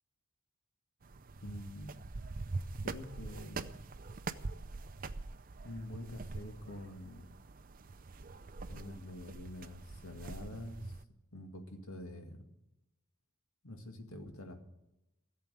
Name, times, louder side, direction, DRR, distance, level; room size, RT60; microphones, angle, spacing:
sound 1, 1.0-11.0, right 3 dB, 40° right, 0.5 m, -44 dB
voice 1, 1.4-2.1 2.8-3.8 5.6-7.4 8.7-11.0 11.3-12.4 13.6-14.6, left 1 dB, 70° left, 4 dB, 2.1 m, -46 dB
15.5 x 7.6 x 9.0 m, 0.89 s
head